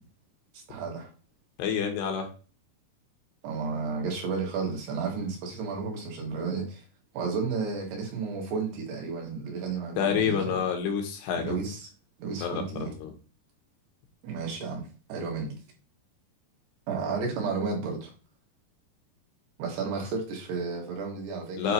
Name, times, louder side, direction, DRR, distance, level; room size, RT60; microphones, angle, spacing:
voice 1, 0.7-1.1 3.4-6.8 7.1-10.6 11.4-11.9 12.2-12.9 14.2-15.6 16.9-18.1 19.6-21.7, right 4 dB, 80° right, 3.8 m, -32 dB
voice 2, 1.6-2.3 10.0-11.6 12.4-13.1 21.6-21.7, left 7 dB, 85° left, 3.2 m, -28 dB
8.4 x 2.8 x 4.4 m
omnidirectional pair, 4.8 m